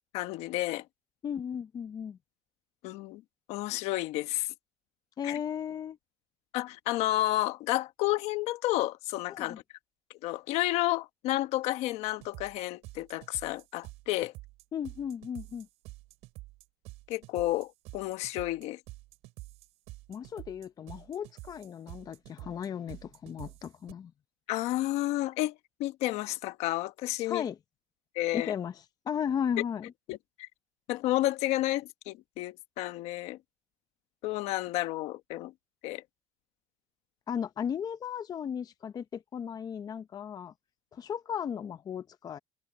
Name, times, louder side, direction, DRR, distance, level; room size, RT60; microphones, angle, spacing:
voice 1, 0.1-0.8 2.8-3.2 3.5-4.5 5.2-5.4 6.5-9.6 10.2-14.3 17.1-18.8 24.5-25.5 25.8-27.4 28.1-28.5 30.1-30.5 30.9-33.4 34.2-35.5 35.8-36.0, left 16 dB, 80° left, 1.3 m, -31 dB
voice 2, 1.2-2.2 5.2-6.0 9.3-9.6 14.7-15.7 20.1-24.1 27.2-27.6 28.3-29.9 37.3-40.5 40.9-42.4, left 8 dB, 35° left, 0.7 m, -35 dB
sound 1, 12.1-23.9, right 20 dB, 85° right, 6.5 m, -48 dB
cardioid pair, 125°, 11 cm